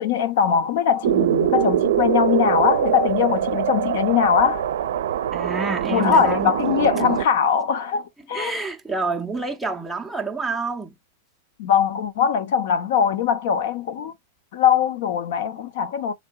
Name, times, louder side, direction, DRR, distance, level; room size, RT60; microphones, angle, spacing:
voice 1, 0.0-4.6 5.9-8.6 11.6-14.1 14.5-16.1, left 8 dB, 60° left, 0.6 m, -21 dB
sound 1, 1.0-7.3, right 10 dB, 80° right, 0.4 m, -23 dB
voice 2, 5.3-6.6 8.3-11.0, right 3 dB, 5° right, 0.5 m, -28 dB
3.7 x 3.3 x 2.2 m
supercardioid pair, 165°, 0 cm